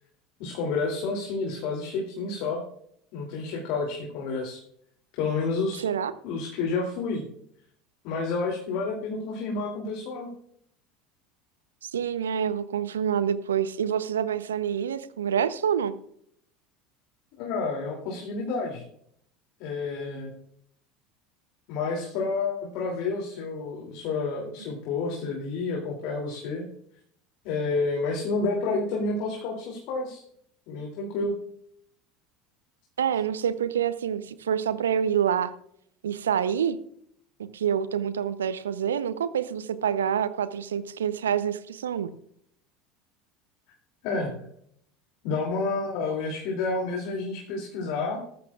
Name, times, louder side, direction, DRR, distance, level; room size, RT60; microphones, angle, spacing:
voice 1, 0.4-2.6 3.1-4.6 5.2-5.8 6.2-7.3 8.0-10.3 17.4-18.8 19.6-20.3 21.7-26.7 27.4-30.2 30.7-31.4 44.0-44.5 45.2-48.2, left 3 dB, 60° left, 0 dB, 2.7 m, -30 dB
voice 2, 5.8-6.1 11.8-15.9 33.0-35.5 36.0-36.8 37.5-42.1, right 8 dB, 80° right, 14 dB, 0.7 m, -27 dB
18.0 x 14.0 x 2.4 m, 0.69 s
figure-of-eight pair, 70°, 0 cm